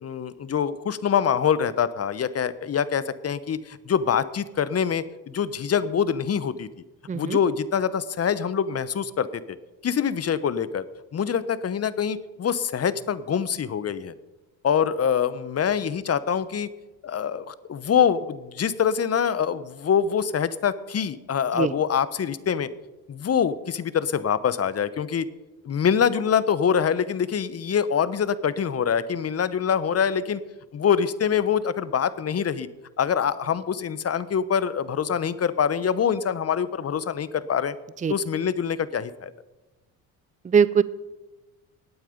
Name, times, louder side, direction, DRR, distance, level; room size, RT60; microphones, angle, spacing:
voice 1, 0.0-6.7 7.1-9.6 9.8-10.9 11.1-14.1 14.6-16.7 17.0-22.7 23.1-25.3 25.6-30.4 30.7-32.7 33.0-37.8 38.1-39.3, left 7 dB, 35° left, 16 dB, 0.9 m, -25 dB
voice 2, 7.1-7.4 21.5-21.7 38.0-38.1 40.4-40.8, right 6 dB, 20° right, 17 dB, 0.6 m, -21 dB
17.5 x 9.1 x 5.1 m, 1.1 s
hypercardioid pair, 65°, 43 cm